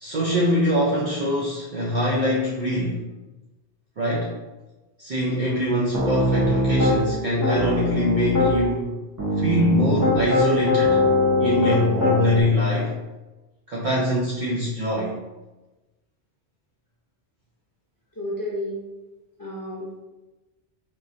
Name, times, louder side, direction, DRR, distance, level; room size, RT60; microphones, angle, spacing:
voice 1, 0.0-3.1 4.0-4.3 5.0-9.0 9.4-11.0 11.4-13.0 13.7-15.2, equal, 55° right, -5 dB, 0.6 m, -23 dB
Piano, 5.9-7.0 7.4-8.5 9.2-12.4, left 2 dB, 20° right, 0.8 m, -21 dB
voice 2, 18.2-18.8 19.4-20.0, left 1 dB, 25° left, -7 dB, 0.6 m, -31 dB
3.8 x 3.0 x 2.6 m, 1.1 s
omnidirectional pair, 1.2 m